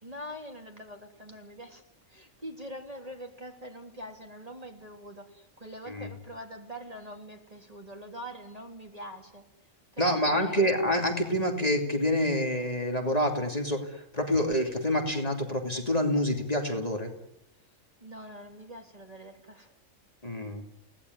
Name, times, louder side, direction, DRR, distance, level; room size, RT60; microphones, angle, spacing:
voice 1, 0.0-1.8 2.1-9.4 9.9-10.7 18.0-19.7, equal, 30° right, 3 dB, 3.5 m, -43 dB
voice 2, 10.0-17.1 20.2-20.6, equal, 30° left, 3 dB, 3.0 m, -27 dB
29.5 x 18.5 x 9.7 m, 0.84 s
omnidirectional pair, 1.3 m